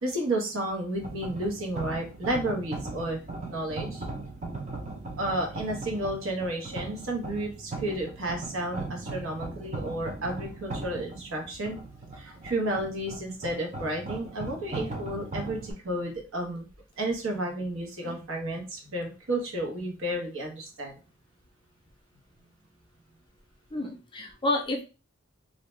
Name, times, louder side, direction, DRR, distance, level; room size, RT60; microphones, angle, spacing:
voice 1, 0.0-3.2 3.5-4.0 5.2-11.8 12.1-16.7 17.0-21.0, right 1 dB, 85° right, 1 dB, 0.9 m, -32 dB
sound 1, 0.9-15.7, right 2 dB, 35° right, 0.6 m, -38 dB
voice 2, 23.7-24.8, left 2 dB, 25° left, 3 dB, 0.5 m, -29 dB
2.7 x 2.2 x 3.1 m, 0.32 s
head